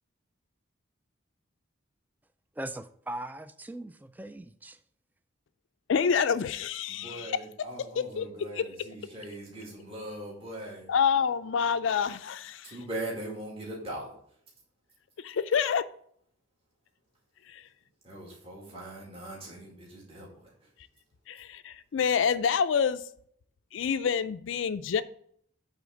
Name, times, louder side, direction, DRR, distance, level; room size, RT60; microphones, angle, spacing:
voice 1, 2.6-4.8, right 1 dB, 10° right, 0.3 m, -40 dB
voice 2, 5.9-7.4 7.9-8.9 10.9-12.8 15.2-15.9 17.5-17.7 21.3-23.1 23.7-25.0, left 7 dB, 70° left, 0.4 m, -28 dB
voice 3, 6.9-10.9 12.6-14.1 18.0-20.5, right 1 dB, 30° right, 2.2 m, -40 dB
8.3 x 3.9 x 6.3 m
head